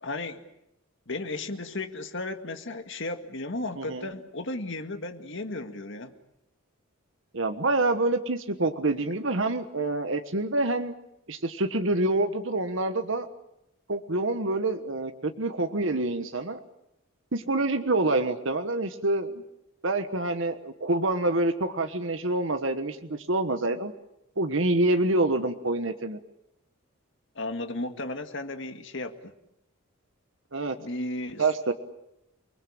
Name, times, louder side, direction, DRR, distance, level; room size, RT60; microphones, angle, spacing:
voice 1, 0.0-0.5 1.1-6.1 27.4-29.3 30.8-31.4, left 2 dB, 60° left, 7 dB, 2.0 m, -34 dB
voice 2, 3.8-4.1 7.3-10.9 11.3-13.3 13.9-16.6 17.3-19.4 19.8-23.9 24.4-26.2 30.5-30.8 31.4-31.7, right 2 dB, 65° right, 7 dB, 1.4 m, -27 dB
29.0 x 20.5 x 8.7 m, 0.83 s
head